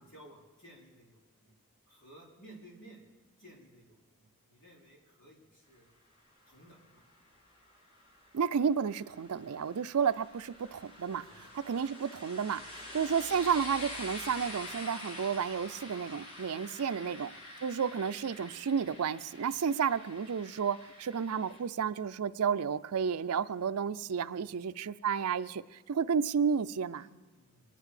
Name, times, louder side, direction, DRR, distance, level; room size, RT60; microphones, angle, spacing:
voice 1, 0.0-1.5 1.9-3.0 3.4-5.9 6.5-7.0 11.1-11.5 16.5-16.9 24.2-24.4 26.9-27.6, right 1 dB, 55° left, -3 dB, 4.3 m, -56 dB
sound 1, 6.6-21.6, left 1 dB, 75° left, 3.0 m, -47 dB
voice 2, 8.3-11.2 11.7-17.3 17.6-27.0, right 6 dB, 90° right, 14 dB, 0.5 m, -31 dB
24.5 x 10.0 x 5.0 m, 1.2 s
head